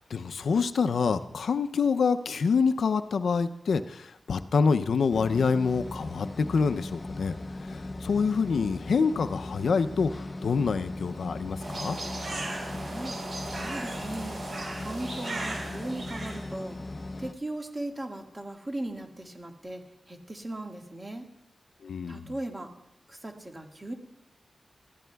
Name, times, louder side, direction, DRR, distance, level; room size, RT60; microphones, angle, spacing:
voice 1, 0.0-7.3 7.6-10.1 10.4-12.0 21.8-22.3, left 5 dB, 90° left, 11 dB, 0.4 m, -26 dB
sound 1, 5.1-17.3, left 2 dB, 35° left, 0.6 m, -38 dB
sound 2, 11.6-16.4, right 2 dB, 60° right, 5.3 m, -37 dB
voice 2, 12.8-13.1 13.5-14.4 14.8-16.8 17.2-21.3 22.1-22.7 23.1-23.9, right 1 dB, 25° right, 2 dB, 1.7 m, -38 dB
20.0 x 14.5 x 2.3 m, 0.84 s
wide cardioid pair, 100°, 0 cm